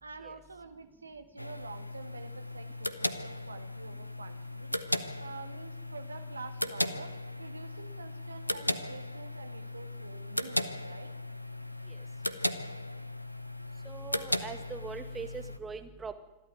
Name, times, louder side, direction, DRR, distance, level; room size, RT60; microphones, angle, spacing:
voice 1, 0.0-4.9 5.2-11.1, right 4 dB, 80° right, 8 dB, 1.7 m, -47 dB
sound 1, 1.4-15.6, left 1 dB, 90° left, 0.8 m, -37 dB
voice 2, 13.9-16.1, right 5 dB, 15° right, 7 dB, 2.0 m, -41 dB
26.5 x 12.0 x 9.3 m, 0.95 s
figure-of-eight pair, 90°, 0 cm